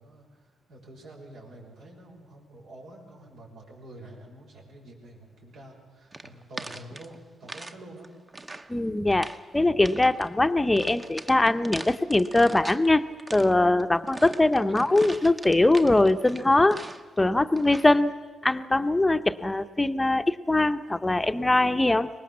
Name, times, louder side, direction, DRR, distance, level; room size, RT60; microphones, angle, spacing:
voice 1, 0.0-8.1, right 1 dB, 85° right, -1 dB, 5.9 m, -47 dB
sound 1, 6.1-7.8 8.0-8.7 9.1-9.4 9.8-10.3 10.8-12.9 13.2-17.2 17.6-18.0, right 2 dB, 20° right, 0.9 m, -41 dB
voice 2, 8.7-9.3 9.5-13.0 13.3-16.8 17.2-18.1 18.4-22.1, left 2 dB, 15° left, 10 dB, 0.8 m, -22 dB
24.0 x 19.5 x 7.3 m, 1.4 s
cardioid pair, 110°, 0 cm